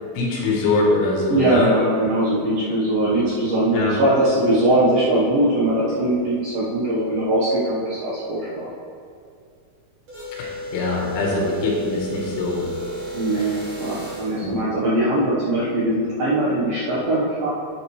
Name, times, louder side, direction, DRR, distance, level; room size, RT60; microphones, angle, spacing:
voice 1, 0.2-1.7 3.7-3.9 10.4-12.7 14.4-14.5, left 3 dB, 75° left, -2 dB, 3.5 m, -23 dB
voice 2, 1.3-8.7 13.1-17.5, right 1 dB, 65° right, -9 dB, 2.3 m, -21 dB
sound 1, 10.1-14.5, right 1 dB, 40° right, 2.0 m, -33 dB
11.5 x 8.0 x 3.3 m, 2.4 s
omnidirectional pair, 5.9 m